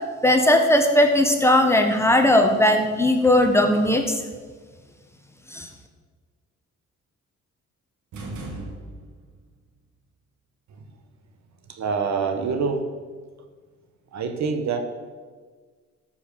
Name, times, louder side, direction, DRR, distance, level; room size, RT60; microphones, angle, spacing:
voice 1, 0.2-4.1 5.5-5.7, left 1 dB, 10° left, 4 dB, 1.4 m, -18 dB
sound 1, 8.1-9.4, right 2 dB, 85° right, 2.5 m, -36 dB
voice 2, 11.7-12.9 14.1-14.8, right 5 dB, 65° right, 7 dB, 1.4 m, -25 dB
13.0 x 5.9 x 7.0 m, 1.5 s
cardioid pair, 90°, 30 cm